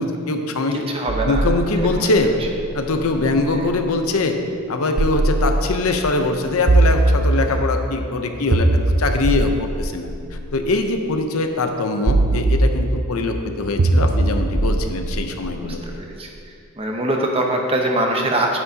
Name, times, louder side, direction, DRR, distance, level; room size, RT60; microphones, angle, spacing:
voice 1, 0.0-0.9 1.3-2.3 2.7-4.4 4.7-16.0, left 2 dB, 75° left, 5 dB, 0.7 m, -22 dB
voice 2, 0.9-1.4 2.0-2.1 3.5-3.6 7.5-7.6 15.6-16.3 16.8-18.6, right 1 dB, 25° right, 1 dB, 0.9 m, -23 dB
sound 1, 1.1-3.8 5.0-6.0 6.7-7.8 8.5-10.8 12.1-13.2 13.8-15.9, right 2 dB, 50° right, 0.5 m, -21 dB
10.5 x 9.5 x 2.8 m, 2.5 s
head